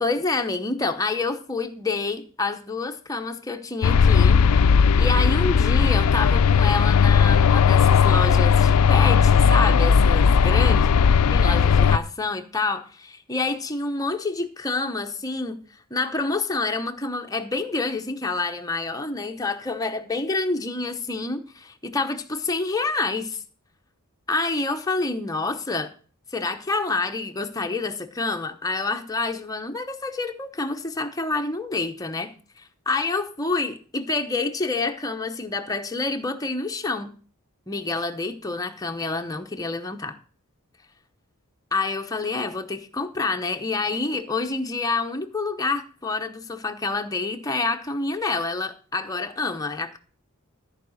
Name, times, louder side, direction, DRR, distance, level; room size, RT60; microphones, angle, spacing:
voice 1, 0.0-4.4 5.0-10.9 11.3-15.6 15.9-23.4 24.3-25.9 26.3-37.1 37.7-40.2 41.7-50.0, left 3 dB, 15° left, 0.8 m, -28 dB
sound 1, 3.8-12.0, left 6 dB, 85° left, 0.4 m, -17 dB
13.5 x 4.8 x 6.4 m
head